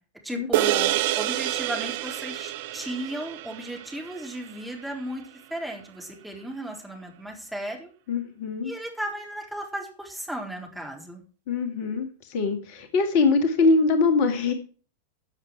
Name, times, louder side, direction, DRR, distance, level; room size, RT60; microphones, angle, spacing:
voice 1, 0.2-7.9 8.6-11.2, right 1 dB, ahead, 0 dB, 4.0 m, -35 dB
sound 1, 0.5-5.1, right 15 dB, 50° right, 0.4 m, -28 dB
voice 2, 8.1-8.7 11.5-14.5, left 4 dB, 45° left, 8 dB, 1.9 m, -23 dB
14.5 x 7.5 x 4.7 m, 0.39 s
figure-of-eight pair, 90°, 0 cm